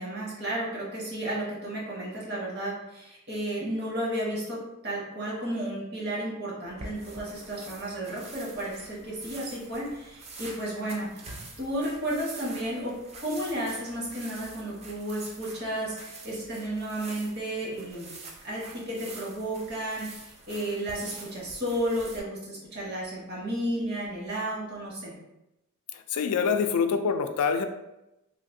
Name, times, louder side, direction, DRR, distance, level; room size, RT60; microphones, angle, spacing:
voice 1, 0.0-4.6 4.8-11.2 11.6-18.1 18.4-25.1, right 1 dB, 45° right, -5 dB, 1.0 m, -33 dB
sound 1, 6.7-22.2, right 3 dB, 30° right, 0.4 m, -46 dB
voice 2, 25.9-27.6, left 6 dB, 80° left, 8 dB, 0.3 m, -26 dB
3.1 x 2.5 x 2.6 m, 0.92 s
head